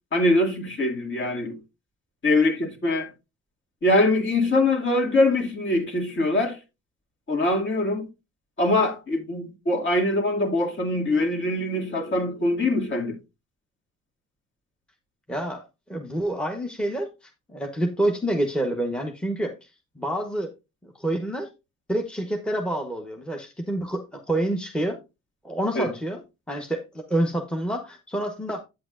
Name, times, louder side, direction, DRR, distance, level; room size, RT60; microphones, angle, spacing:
voice 1, 0.1-1.6 2.2-3.1 3.8-6.6 7.3-8.1 8.6-13.2 25.8-25.9, left 2 dB, 40° left, 2.3 m, -23 dB
voice 2, 15.3-15.6 15.9-17.1 17.5-19.7 20.0-20.5 21.0-21.5 21.9-25.0 25.4-26.2 26.5-28.6, right 1 dB, 5° left, 1.1 m, -27 dB
8.7 x 7.8 x 2.5 m
cardioid pair, 90°, 30 cm